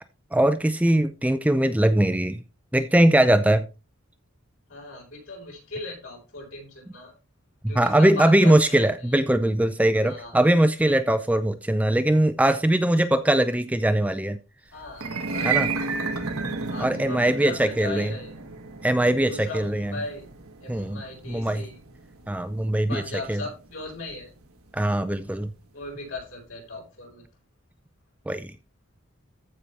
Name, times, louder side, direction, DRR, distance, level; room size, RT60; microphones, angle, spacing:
voice 1, 0.3-2.4 2.7-3.7 7.6-14.4 15.4-15.7 16.8-18.1 18.8-19.9 20.7-21.0 21.3-21.6 22.3-23.0 23.3-23.4 24.7-25.5 28.3-28.5, right 1 dB, 5° right, 0.4 m, -21 dB
voice 2, 4.7-7.2 7.7-9.1 10.0-10.4 14.7-15.8 16.7-18.5 19.2-20.2 20.6-21.8 22.9-24.3 25.7-27.2, left 2 dB, 65° left, 4.7 m, -38 dB
sound 1, 14.9-25.2, right 4 dB, 85° right, 1.5 m, -33 dB
14.5 x 5.6 x 3.4 m
head